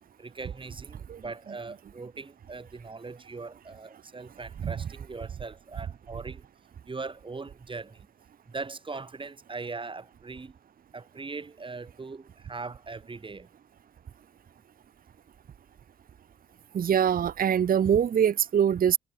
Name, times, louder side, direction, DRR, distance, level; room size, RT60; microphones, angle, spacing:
voice 1, 0.2-6.5 6.9-8.1 8.5-10.5 10.9-13.5, right 4 dB, 25° right, 1.2 m, -40 dB
voice 2, 16.7-19.0, right 8 dB, 45° right, 0.6 m, -23 dB
wide cardioid pair, 155°, 21 cm